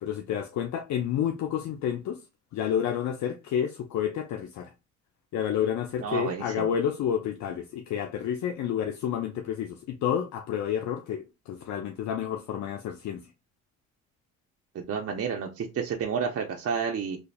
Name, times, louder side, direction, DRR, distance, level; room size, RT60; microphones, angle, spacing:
voice 1, 0.0-2.2 2.5-4.7 5.3-13.2, left 9 dB, 70° left, 0.5 m, -30 dB
voice 2, 6.0-6.7 14.7-17.2, right 6 dB, 50° right, 0.7 m, -30 dB
3.9 x 3.3 x 2.2 m
cardioid pair, 90°, 30 cm